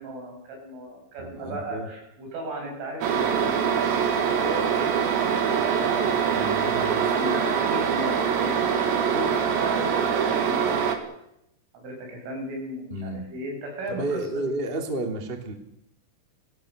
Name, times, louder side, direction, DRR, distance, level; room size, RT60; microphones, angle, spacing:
voice 1, 0.0-4.7 5.3-6.3 6.6-11.1 11.7-14.5, equal, 85° right, 1 dB, 9.5 m, -36 dB
voice 2, 1.2-1.9 6.3-7.0 12.9-13.2 13.9-15.5, right 2 dB, 15° right, 3 dB, 2.2 m, -31 dB
sound 1, 3.0-11.0, right 7 dB, 70° right, 4.3 m, -24 dB
29.5 x 16.5 x 6.8 m, 0.81 s
omnidirectional pair, 5.5 m